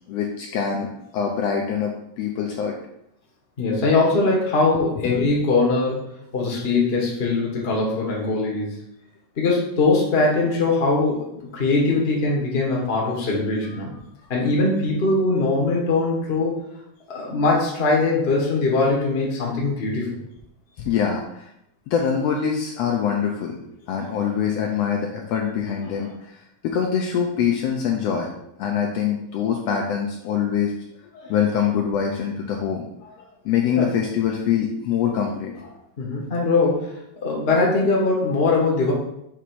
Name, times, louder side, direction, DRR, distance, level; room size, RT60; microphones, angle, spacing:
voice 1, 0.1-2.8 5.0-5.3 20.8-21.4 21.9-23.6 23.9-26.4 26.6-28.3 28.6-30.8 31.1-35.8, left 7 dB, 75° left, 1 dB, 1.5 m, -24 dB
voice 2, 3.6-6.0 6.3-8.8 9.4-13.9 14.3-16.6 17.1-20.2 33.7-33.8 36.0-36.9 37.2-38.9, left 3 dB, 40° left, -3 dB, 0.8 m, -21 dB
7.0 x 3.0 x 4.6 m, 0.79 s
omnidirectional pair, 3.4 m